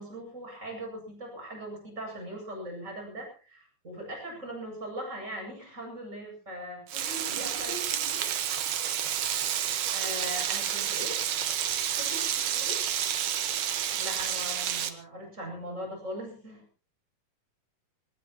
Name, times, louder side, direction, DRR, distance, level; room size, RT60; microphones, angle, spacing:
voice 1, 0.0-6.8 7.3-7.7 9.9-11.2 14.0-16.6, equal, 20° right, 0 dB, 8.4 m, -40 dB
voice 2, 6.9-8.3 12.0-12.8, left 1 dB, 80° left, 3 dB, 7.5 m, -43 dB
Frying (food), 6.9-14.9, right 10 dB, 70° right, 2.8 m, -30 dB
22.5 x 20.0 x 3.0 m, 0.36 s
omnidirectional pair, 3.9 m